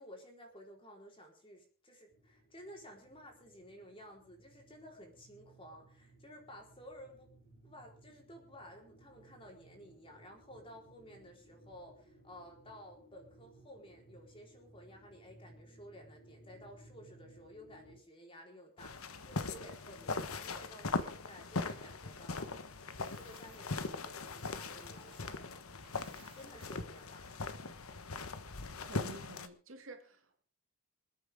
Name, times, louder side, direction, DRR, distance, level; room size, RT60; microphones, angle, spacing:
voice 1, 0.0-7.3 7.6-22.6 23.1-25.7 26.2-27.5, equal, 25° left, 4.3 m, -54 dB
sound 1, 2.1-18.0, right 1 dB, 45° left, 4.4 m, -61 dB
sound 2, 18.8-29.5, left 3 dB, 75° left, 1.3 m, -40 dB
Coin (dropping), 22.5-25.4 25.7-28.0, right 6 dB, 25° right, 4.1 m, -65 dB
voice 2, 28.9-30.4, right 2 dB, 60° right, 2.5 m, -50 dB
27.5 x 9.2 x 3.7 m
head